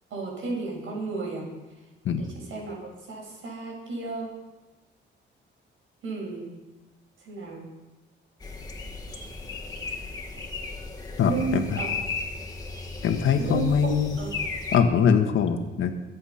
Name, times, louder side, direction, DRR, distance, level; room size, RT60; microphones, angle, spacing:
voice 1, 0.1-1.5 2.2-4.3 6.0-6.5 7.2-7.6 11.2-11.9 13.3-13.9 14.2-14.3, right 4 dB, 75° right, -2 dB, 6.7 m, -33 dB
sound 1, 8.4-14.8, left 4 dB, 20° left, 2.0 m, -35 dB
voice 2, 11.2-11.8 13.0-14.2 14.7-15.9, left 7 dB, 80° left, 6 dB, 1.6 m, -22 dB
23.0 x 8.5 x 5.8 m, 1.1 s
cardioid pair, 110°, 20 cm